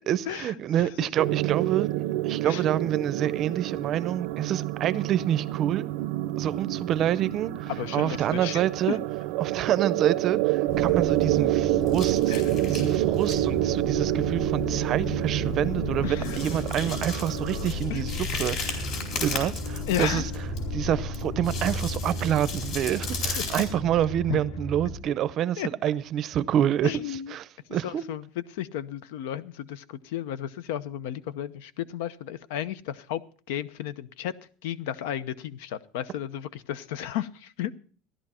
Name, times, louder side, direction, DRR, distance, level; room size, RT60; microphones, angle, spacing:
voice 1, 0.1-1.9 2.2-5.9 6.4-9.0 9.4-12.3 12.7-18.9 19.2-20.2 20.7-28.0, right 11 dB, 35° right, 0.5 m, -27 dB
sound 1, 1.2-17.7, right 16 dB, 80° right, 0.6 m, -28 dB
voice 2, 7.7-8.6 8.9-9.0 12.3-12.7 16.0-16.5 17.9-18.0 19.9-20.3 23.4-23.5 24.3-24.4 25.6-25.7 26.8-27.3 27.8-28.2 28.5-33.2 33.5-34.3 34.6-37.7, left 11 dB, 85° left, 0.7 m, -33 dB
sound 2, 10.7-25.0, left 1 dB, 65° left, 2.9 m, -34 dB
sound 3, 10.8-11.5 11.9-13.4 13.8-14.0 14.6-14.7 14.9-15.1 15.5-15.6 16.2-20.6 21.1-23.6, left 5 dB, 45° left, 4.3 m, -36 dB
15.5 x 11.5 x 4.3 m
cardioid pair, 165°, 0 cm